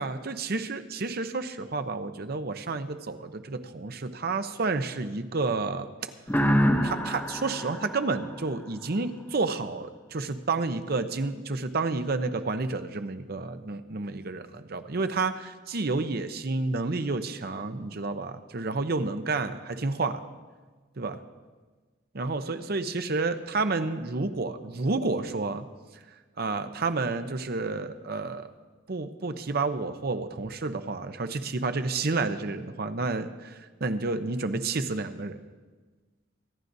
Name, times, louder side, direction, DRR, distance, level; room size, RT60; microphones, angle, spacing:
voice 1, 0.0-6.1 6.8-20.2 21.0-21.2 22.1-25.7 26.4-28.5 28.9-35.4, right 3 dB, 55° right, 9 dB, 0.7 m, -30 dB
sound 1, 6.3-9.0, equal, 10° left, 0.8 m, -27 dB
24.0 x 11.5 x 2.7 m, 1.3 s
head